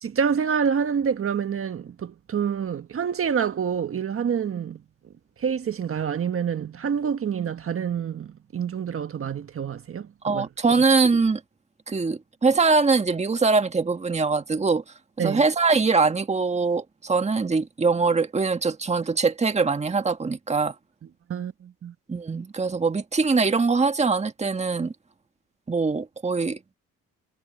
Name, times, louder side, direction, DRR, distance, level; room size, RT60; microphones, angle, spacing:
voice 1, 0.0-4.8 5.4-10.1 10.3-10.5 15.2-15.4 21.3-21.9, right 7 dB, 45° right, 1.5 m, -27 dB
voice 2, 10.2-11.4 11.9-14.8 15.2-20.7 22.1-24.9 25.7-26.6, right 4 dB, 20° right, 1.6 m, -22 dB
cardioid pair, 90°, 30 cm